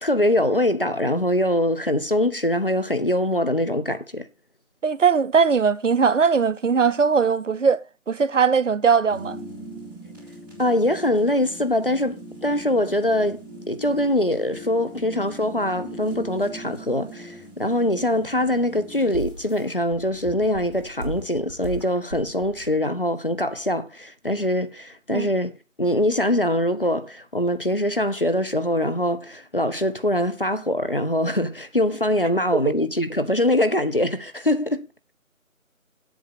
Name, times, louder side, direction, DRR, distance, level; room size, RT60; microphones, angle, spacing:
voice 1, 0.0-4.3 10.6-25.5 25.8-34.9, left 1 dB, 40° left, 0.7 m, -23 dB
voice 2, 4.8-9.4 25.1-25.3, right 6 dB, 60° right, 0.7 m, -20 dB
sound 1, 9.1-22.7, right 2 dB, 15° right, 3.9 m, -39 dB
8.0 x 6.3 x 6.7 m
figure-of-eight pair, 170°, 42 cm